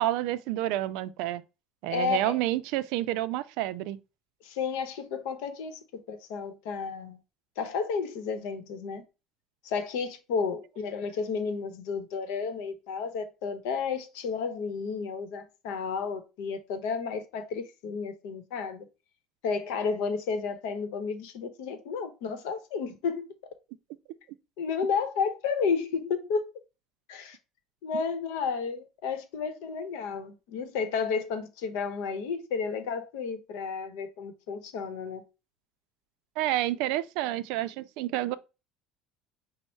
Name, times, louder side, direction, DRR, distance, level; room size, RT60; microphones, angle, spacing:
voice 1, 0.0-1.4 1.8-4.0 36.4-38.4, right 14 dB, 70° right, 0.3 m, -29 dB
voice 2, 1.9-2.4 4.4-5.8 6.1-7.2 7.6-9.0 9.6-18.9 19.4-23.3 24.6-26.5 27.1-27.4 27.8-35.2, left 5 dB, 80° left, 0.8 m, -32 dB
5.3 x 2.0 x 4.4 m
cardioid pair, 150°, 0 cm